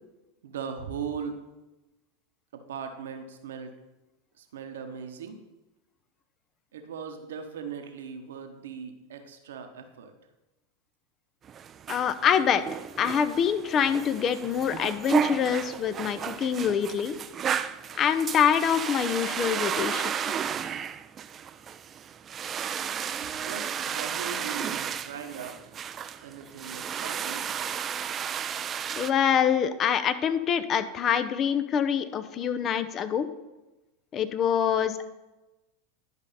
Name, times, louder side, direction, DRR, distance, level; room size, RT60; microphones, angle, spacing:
voice 1, 0.4-1.4 2.5-3.7 4.4-5.4 6.7-10.1 23.2-25.6 26.2-27.4, right 6 dB, 75° right, 6 dB, 1.0 m, -39 dB
sound 1, 11.4-29.1, right 8 dB, 35° right, 0.4 m, -33 dB
voice 2, 11.9-12.6 13.0-17.2 17.9-20.1 28.9-33.3 34.1-35.0, left 8 dB, 35° left, 12 dB, 0.6 m, -25 dB
11.0 x 5.3 x 4.1 m, 1.1 s
hypercardioid pair, 90°, 0 cm